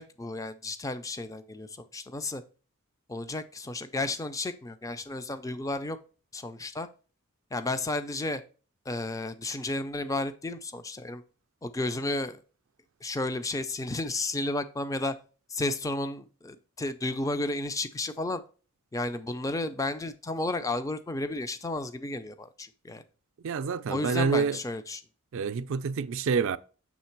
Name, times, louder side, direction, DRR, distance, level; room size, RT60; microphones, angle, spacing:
voice 1, 0.0-2.4 3.1-6.0 6.3-6.9 7.5-8.4 8.9-11.2 11.6-12.4 13.0-15.2 15.5-18.4 18.9-23.0 23.9-25.0, left 2 dB, 15° left, 0.4 m, -32 dB
voice 2, 23.4-24.6 25.3-26.6, right 5 dB, 60° right, 0.4 m, -27 dB
7.3 x 3.2 x 4.5 m
head